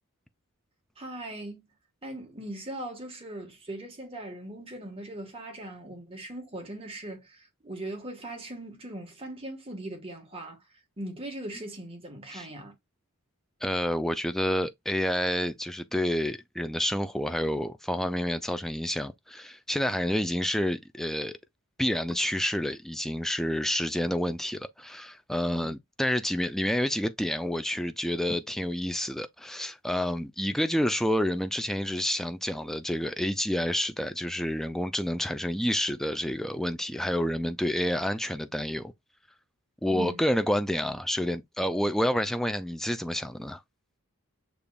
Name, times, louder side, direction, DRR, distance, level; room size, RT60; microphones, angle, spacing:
voice 1, 1.0-1.6 2.0-10.6 11.0-12.7 25.5-25.7 39.9-40.2, right 1 dB, 25° right, 1.4 m, -40 dB
voice 2, 13.6-21.4 21.8-38.9 39.8-43.6, equal, ahead, 0.3 m, -29 dB
6.8 x 3.0 x 2.3 m
head